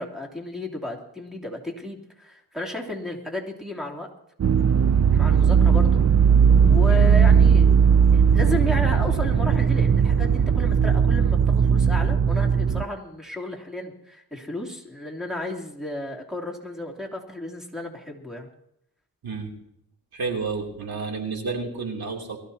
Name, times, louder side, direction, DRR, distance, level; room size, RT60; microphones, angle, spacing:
voice 1, 0.0-4.1 5.1-6.0 6.6-7.7 8.1-18.5, left 1 dB, ahead, 0 dB, 3.0 m, -33 dB
sound 1, 4.4-12.8, right 7 dB, 45° right, 0.5 m, -18 dB
voice 2, 20.1-22.4, right 4 dB, 75° right, 1 dB, 3.2 m, -30 dB
22.5 x 14.5 x 2.9 m, 0.76 s
wide cardioid pair, 80°, 37 cm